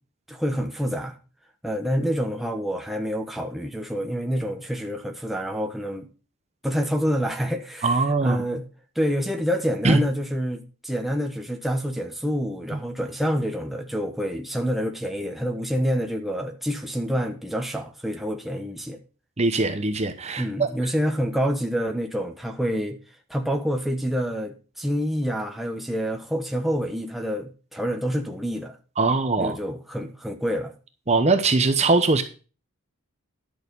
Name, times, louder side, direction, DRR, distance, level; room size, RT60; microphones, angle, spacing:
voice 1, 0.3-1.2 1.6-6.1 6.6-8.6 8.9-19.0 20.4-23.0 23.3-28.8 29.4-30.7, equal, ahead, 1.0 m, -27 dB
voice 2, 7.8-8.4 9.8-10.0 12.7-12.8 19.4-20.7 29.0-29.6 31.1-32.2, right 3 dB, 30° right, 0.8 m, -21 dB
11.0 x 6.5 x 5.3 m
head